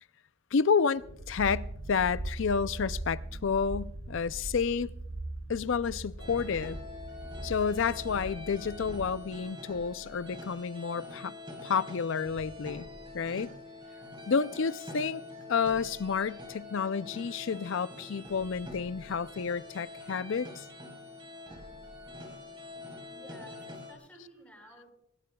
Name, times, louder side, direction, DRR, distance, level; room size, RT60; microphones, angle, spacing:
voice 1, 0.5-4.9 5.5-6.8 7.4-11.3 11.6-12.9 13.1-13.5 14.3-15.2 15.5-20.6, left 6 dB, 60° left, 0.5 m, -30 dB
sound 1, 1.0-9.4, right 1 dB, 70° right, 1.3 m, -40 dB
sound 2, 6.2-23.9, left 2 dB, 25° right, 3.9 m, -45 dB
voice 2, 23.1-24.9, equal, 5° left, 7.4 m, -53 dB
23.5 x 21.0 x 2.3 m
head